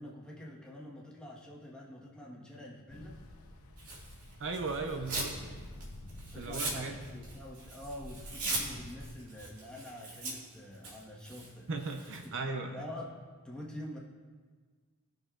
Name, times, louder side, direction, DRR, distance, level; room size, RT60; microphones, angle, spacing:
voice 1, 0.0-3.2 6.3-11.7 12.1-13.2 13.4-14.0, left 1 dB, 5° left, -4 dB, 1.4 m, -46 dB
Ocean, 2.9-9.1, left 1 dB, 80° left, 1.0 m, -49 dB
Tearing, 3.8-5.4 5.7-12.3, right 2 dB, 85° right, 2.2 m, -40 dB
voice 2, 4.4-5.4 6.3-7.1 11.7-12.8, right 3 dB, 60° right, 4 dB, 0.7 m, -37 dB
19.0 x 6.4 x 2.5 m, 1.5 s
head